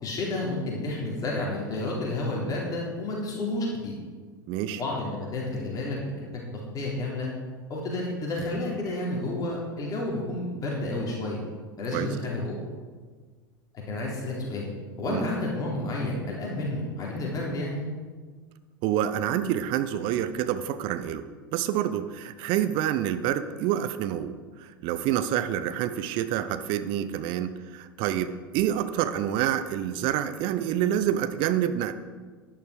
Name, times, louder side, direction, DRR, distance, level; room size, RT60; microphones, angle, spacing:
voice 1, 0.0-3.9 4.7-6.2 6.7-7.3 7.7-11.4 11.8-12.6 13.9-14.7 15.0-17.8, left 2 dB, 30° left, -3 dB, 3.5 m, -30 dB
voice 2, 4.5-4.8 11.9-12.1 15.1-15.3 18.8-21.2 21.5-31.9, right 11 dB, 45° right, 11 dB, 0.8 m, -27 dB
11.0 x 11.0 x 5.1 m, 1.5 s
figure-of-eight pair, 80°, 12 cm